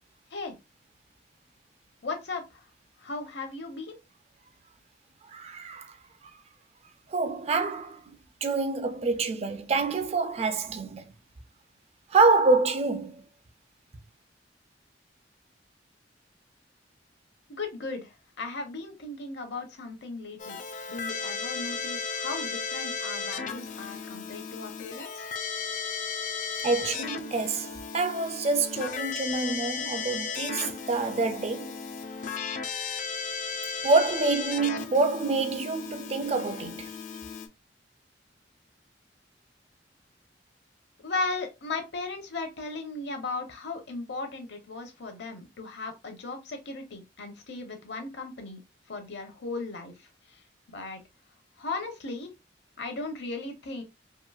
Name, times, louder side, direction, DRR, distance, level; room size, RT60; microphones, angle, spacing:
voice 1, 2.0-2.6 3.0-4.0 17.5-20.6 20.9-25.3 41.0-48.6 48.9-49.9 50.3-50.4 50.7-51.0 51.6-52.3 52.8-53.8, left 3 dB, 65° left, 0.8 m, -36 dB
voice 2, 5.3-5.9 7.1-8.0 8.4-11.0 12.1-13.2 26.6-31.8 33.8-36.9, right 3 dB, 35° right, 0.4 m, -26 dB
Keyboard (musical), 20.4-37.5, left 5 dB, 45° left, 0.4 m, -35 dB
2.9 x 2.6 x 2.3 m
head